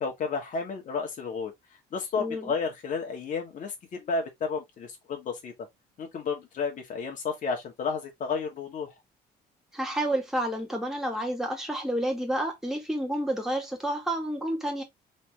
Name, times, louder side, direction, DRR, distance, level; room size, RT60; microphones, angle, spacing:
voice 1, 0.0-1.5 1.9-5.5 6.0-8.9, left 5 dB, 50° left, 2.0 m, -32 dB
voice 2, 2.2-2.5 9.7-14.8, right 1 dB, 5° right, 2.1 m, -30 dB
4.3 x 3.4 x 3.2 m
cardioid pair, 110°, 17 cm